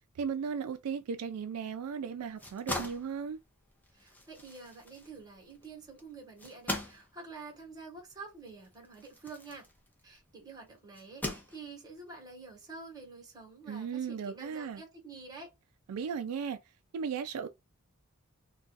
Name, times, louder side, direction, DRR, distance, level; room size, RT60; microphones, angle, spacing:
voice 1, 0.2-3.4 13.7-14.8 15.9-16.6 16.9-17.5, right 6 dB, 85° right, 0.3 m, -36 dB
sound 1, 2.2-10.3 10.9-12.0, left 1 dB, 10° left, 0.6 m, -42 dB
voice 2, 3.9-9.6 10.0-15.5, right 4 dB, 20° right, 1.2 m, -48 dB
2.5 x 2.2 x 3.9 m
head